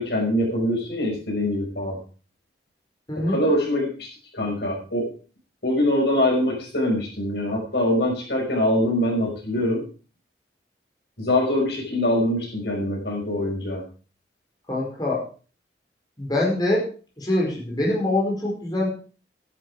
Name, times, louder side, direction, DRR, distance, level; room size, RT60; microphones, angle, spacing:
voice 1, 0.0-2.0 3.2-4.1 4.3-5.1 5.6-9.8 11.2-13.8, left 1 dB, 75° left, 0 dB, 5.8 m, -23 dB
voice 2, 3.1-3.4 14.7-15.2 16.2-16.8 17.2-18.9, left 1 dB, 25° left, -3 dB, 5.2 m, -24 dB
13.5 x 11.0 x 4.9 m, 0.38 s
head